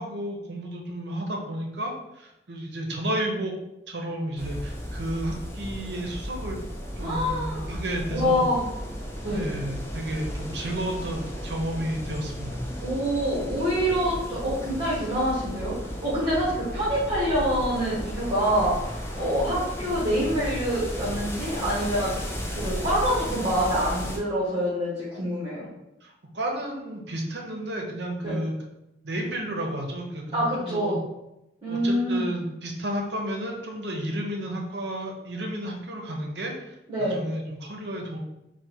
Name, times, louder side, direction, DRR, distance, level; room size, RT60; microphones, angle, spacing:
voice 1, 0.0-3.5 3.9-6.6 7.0-8.5 9.3-12.7 26.0-28.5 29.0-31.0 31.7-38.2, right 1 dB, 75° right, 1 dB, 0.8 m, -32 dB
sound 1, 4.4-24.2, equal, 15° left, 0.6 m, -34 dB
voice 2, 7.0-7.7 8.1-8.6 9.2-9.5 12.8-18.7 19.2-22.1 22.5-25.7 28.2-28.4 30.3-31.0 31.6-32.3 36.9-37.2, equal, 35° right, -9 dB, 1.3 m, -26 dB
3.6 x 2.3 x 4.4 m, 0.89 s
head